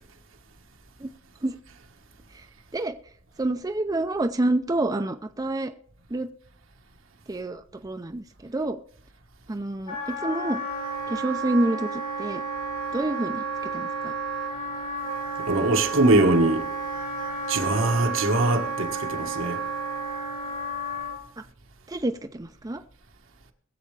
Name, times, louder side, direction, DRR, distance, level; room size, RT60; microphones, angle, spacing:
voice 1, 3.4-5.7 6.1-6.3 7.3-8.8 9.5-10.6 11.1-12.4 12.9-13.4 13.7-14.1 21.9-22.8, right 2 dB, 20° right, 0.5 m, -28 dB
Wind instrument woodwind instrument, 9.9-21.2, right 3 dB, 80° left, 4.3 m, -31 dB
voice 2, 15.5-16.7 17.5-19.6, right 2 dB, 75° right, 1.5 m, -22 dB
21.5 x 7.7 x 3.3 m
head